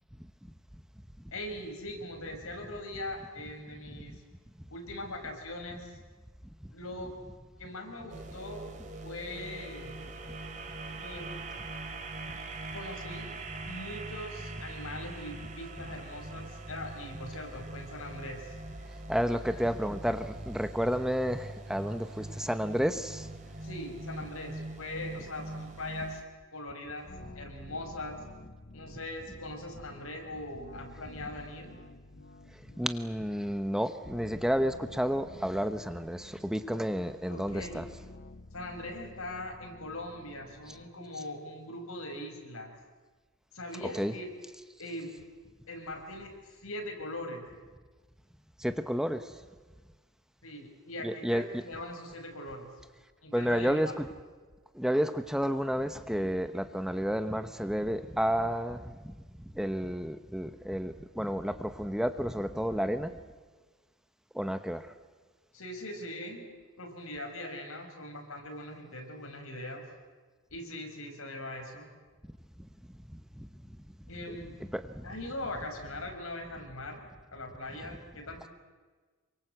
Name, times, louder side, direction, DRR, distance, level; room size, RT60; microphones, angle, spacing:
voice 1, 1.3-4.2 4.7-6.0 6.7-7.1 7.6-8.7 9.0-10.0 11.0-11.3 12.7-13.3 13.6-18.5 19.3-19.4 23.6-26.2 26.5-27.1 27.4-28.2 28.7-31.7 36.7-36.8 37.3-37.9 38.5-42.7 43.5-44.3 44.8-45.1 45.7-47.5 50.4-52.8 53.2-53.9 65.5-66.5 66.8-69.8 70.5-71.9 74.1-74.5 75.0-78.5, left 1 dB, 80° left, 4 dB, 5.6 m, -41 dB
sound 1, 8.1-26.2, right 2 dB, 35° right, 3.1 m, -42 dB
voice 2, 19.1-23.3 32.8-37.9 43.8-44.1 48.6-49.4 51.0-51.6 53.3-54.1 54.7-59.1 59.5-63.1 64.3-64.9 73.1-73.5 74.3-74.4 74.7-75.1, equal, 5° right, 9 dB, 1.0 m, -31 dB
sound 2, 27.0-40.9, left 2 dB, 50° left, 1.0 m, -51 dB
27.0 x 24.0 x 8.0 m, 1.4 s
head